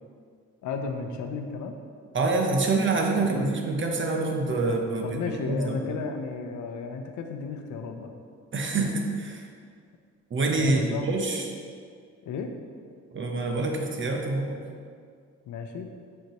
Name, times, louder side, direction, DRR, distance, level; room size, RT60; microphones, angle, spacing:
voice 1, 0.6-1.8 3.2-3.5 5.0-8.1 10.5-11.1 12.2-12.5 15.5-15.9, left 5 dB, 75° left, 5 dB, 0.7 m, -34 dB
voice 2, 2.1-5.2 5.5-6.0 8.5-9.4 10.3-11.4 13.1-14.6, right 3 dB, 40° right, 2 dB, 0.9 m, -26 dB
6.8 x 5.1 x 3.0 m, 2.1 s
cardioid pair, 90°, 30 cm